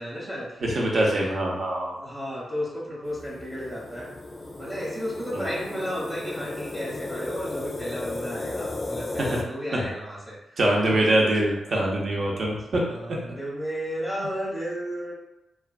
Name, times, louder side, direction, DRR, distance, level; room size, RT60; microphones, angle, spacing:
voice 1, 0.0-0.6 0.9-1.3 1.9-4.1 4.6-10.6 10.9-11.8 12.8-15.1, equal, 15° right, -7 dB, 0.8 m, -33 dB
voice 2, 0.6-1.9 5.3-5.4 9.2-9.4 9.7-9.8 10.6-13.0, right 1 dB, 65° right, -2 dB, 0.6 m, -24 dB
sound 1, 3.1-9.4, left 2 dB, 40° left, 0.4 m, -35 dB
2.4 x 2.2 x 2.3 m, 0.92 s
cardioid pair, 65°, 0 cm